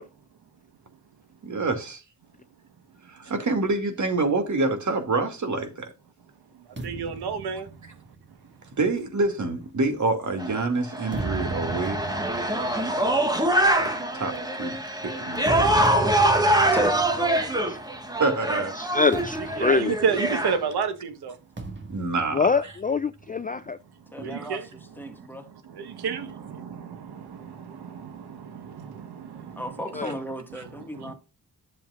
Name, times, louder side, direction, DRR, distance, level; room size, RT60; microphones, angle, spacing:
voice 1, 1.4-2.0 3.1-5.9 8.8-13.1 13.7-13.9 14.1-14.8 15.0-15.7 18.2-18.7 21.9-22.8 24.2-24.4, right 3 dB, 50° right, 2.6 m, -27 dB
sound 1, 6.8-10.4 10.9-18.3 18.5-18.8 19.1-20.7 21.6-23.3, right 2 dB, 30° right, 1.9 m, -37 dB
voice 2, 6.8-7.7 19.6-21.4 24.2-24.6 25.1-29.6 30.9-31.1, right 6 dB, 85° right, 1.4 m, -31 dB
sound 2, 10.4-20.6, right 1 dB, 10° right, 1.5 m, -24 dB
voice 3, 16.3-17.6 24.1-24.7 25.0-25.5 29.6-31.1, equal, 5° left, 1.8 m, -35 dB
voice 4, 18.9-19.9 22.3-23.8 30.0-30.1, left 4 dB, 25° left, 0.3 m, -24 dB
11.5 x 7.1 x 2.5 m
wide cardioid pair, 115°, 38 cm